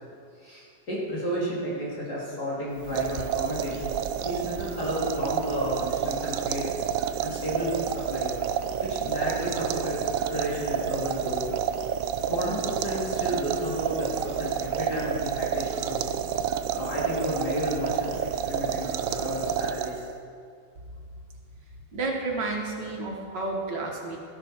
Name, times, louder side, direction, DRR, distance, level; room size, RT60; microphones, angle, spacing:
voice 1, 0.4-6.7 7.2-8.3 8.8-11.4 12.3-16.1 16.7-20.0, equal, 55° left, -6 dB, 3.5 m, -32 dB
Boiling Liquid, 2.8-20.2, right 8 dB, 85° right, 0.7 m, -29 dB
voice 2, 21.9-24.2, right 3 dB, 70° right, 0 dB, 2.0 m, -31 dB
13.5 x 11.0 x 4.5 m, 2.3 s
omnidirectional pair, 2.0 m